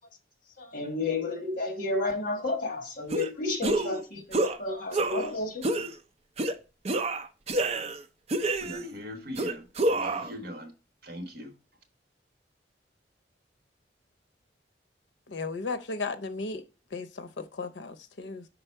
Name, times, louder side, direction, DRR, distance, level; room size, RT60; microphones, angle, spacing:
voice 1, 0.6-5.7, left 2 dB, 50° left, 1.5 m, -31 dB
sound 1, 3.1-3.3 3.6-4.0 4.3-4.6 4.9-5.3 5.6-5.9 6.4-6.5 6.8-8.0 8.3-8.9 9.4-10.3, right 2 dB, 35° right, 0.5 m, -28 dB
voice 2, 8.6-10.7 11.0-11.5, equal, 55° right, 1.3 m, -40 dB
voice 3, 15.3-16.6 16.9-18.5, left 3 dB, 85° left, 0.6 m, -35 dB
5.5 x 3.9 x 4.5 m
head